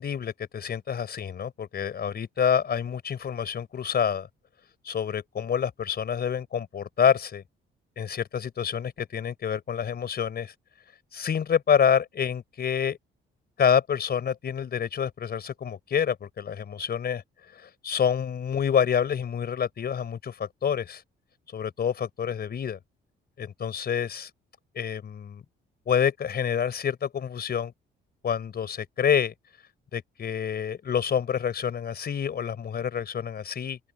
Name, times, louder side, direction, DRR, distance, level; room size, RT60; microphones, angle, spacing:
voice 1, 0.0-4.3 4.8-7.4 8.0-10.5 11.1-13.0 13.6-17.2 17.5-21.0 21.5-22.8 23.4-24.3 24.7-25.4 25.9-27.7 28.2-29.3 29.9-33.8, left 7 dB, 55° left, 4.8 m, -27 dB
open air
cardioid pair, 90°, 20 cm